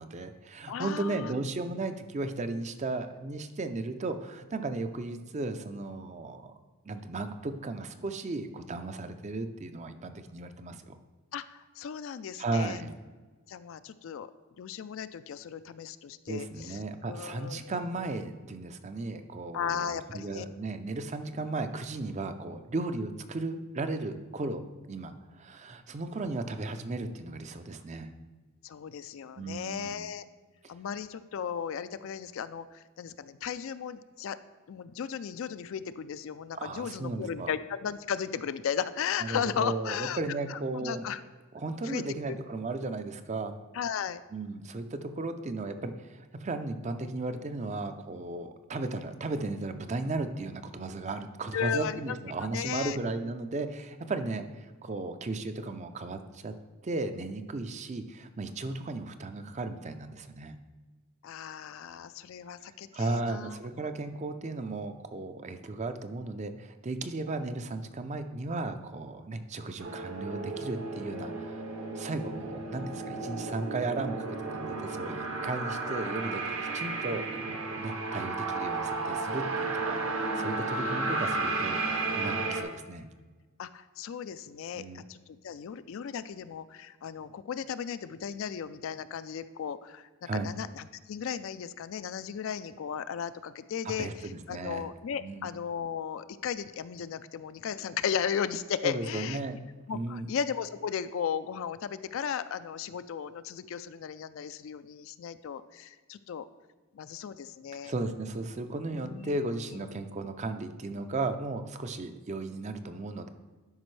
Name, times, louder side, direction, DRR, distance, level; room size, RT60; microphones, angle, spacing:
voice 1, 0.0-6.5 6.8-11.0 12.4-13.0 16.3-24.6 24.9-28.1 29.4-30.1 36.5-37.5 39.2-41.1 41.5-43.6 44.3-56.5 56.8-60.6 62.9-71.7 72.0-74.3 74.5-83.0 84.7-85.0 90.2-90.5 93.8-94.9 95.2-95.5 98.8-99.6 99.9-100.3 107.8-113.3, right 2 dB, 30° right, 9 dB, 0.4 m, -35 dB
voice 2, 0.7-1.4 11.3-12.8 13.5-14.3 14.6-16.8 17.1-17.9 19.5-20.5 28.6-30.3 30.7-34.4 34.7-40.2 40.5-41.2 41.8-42.4 43.7-44.2 51.5-52.2 52.5-53.0 61.2-63.6 83.6-90.1 90.4-99.4 99.9-106.5 106.9-107.9 108.9-109.4 109.7-109.9, left 7 dB, 60° left, 13 dB, 0.3 m, -36 dB
sound 1, 69.8-82.6, right 3 dB, 65° right, 0.9 m, -33 dB
12.0 x 5.2 x 3.2 m, 1.3 s
head